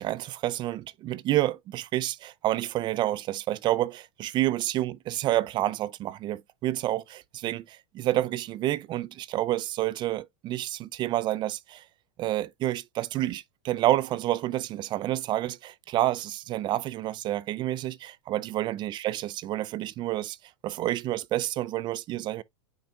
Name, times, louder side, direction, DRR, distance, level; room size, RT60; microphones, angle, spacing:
voice 1, 0.0-11.8 12.2-20.4 20.6-22.4, right 14 dB, 30° right, 0.3 m, -29 dB
8.8 x 5.3 x 2.3 m
hypercardioid pair, 115°, 15 cm